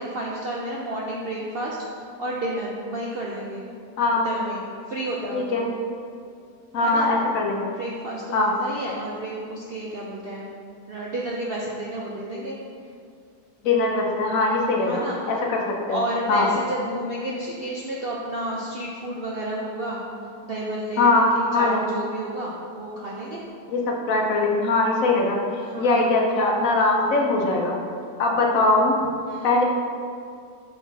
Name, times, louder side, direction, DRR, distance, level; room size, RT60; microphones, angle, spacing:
voice 1, 0.0-3.6 4.2-4.6 4.9-5.6 6.8-7.1 7.7-10.5 10.9-12.6 14.9-15.3 15.9-20.0 20.4-21.1 21.3-23.4 25.6-26.1 29.2-29.6, right 1 dB, 65° right, -4 dB, 0.6 m, -31 dB
voice 2, 4.0-4.3 5.3-5.7 6.7-7.7 8.3-8.5 13.6-15.6 15.9-16.0 16.3-16.5 21.0-21.9 23.7-27.8 28.2-28.9 29.4-29.6, left 2 dB, 65° left, 0 dB, 1.0 m, -21 dB
5.8 x 4.1 x 4.0 m, 2.3 s
omnidirectional pair, 1.7 m